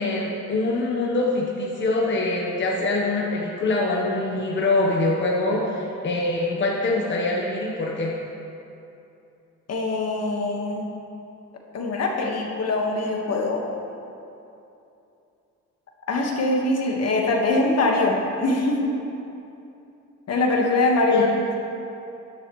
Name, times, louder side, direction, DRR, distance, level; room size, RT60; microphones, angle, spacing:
voice 1, 0.0-8.1 21.1-21.3, left 2 dB, 40° left, -2 dB, 1.2 m, -24 dB
voice 2, 9.7-10.9 11.7-13.6 16.1-19.0 20.3-21.3, left 2 dB, 55° left, 0 dB, 1.6 m, -23 dB
12.5 x 11.0 x 3.2 m, 2.8 s
cardioid pair, 90°, 30 cm